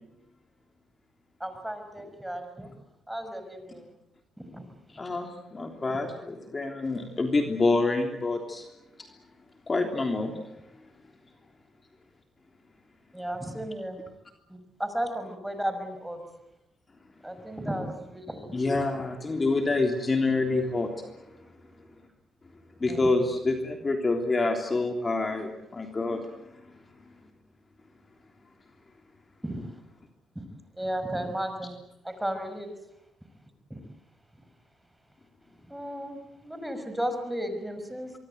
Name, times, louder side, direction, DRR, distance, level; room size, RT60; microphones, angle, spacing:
voice 1, 1.4-2.7 3.1-3.9 4.4-4.7 5.9-6.0 13.1-14.0 14.5-16.2 17.2-18.8 22.9-23.2 29.4-29.7 30.4-30.5 30.8-31.8 32.0-32.7 33.7-33.8 35.7-38.1, right 1 dB, 5° right, 8 dB, 5.6 m, -34 dB
voice 2, 4.9-8.7 9.7-10.3 18.5-21.1 22.8-26.2, left 3 dB, 30° left, 4 dB, 3.3 m, -27 dB
25.0 x 23.0 x 8.0 m, 0.88 s
cardioid pair, 90°, 0 cm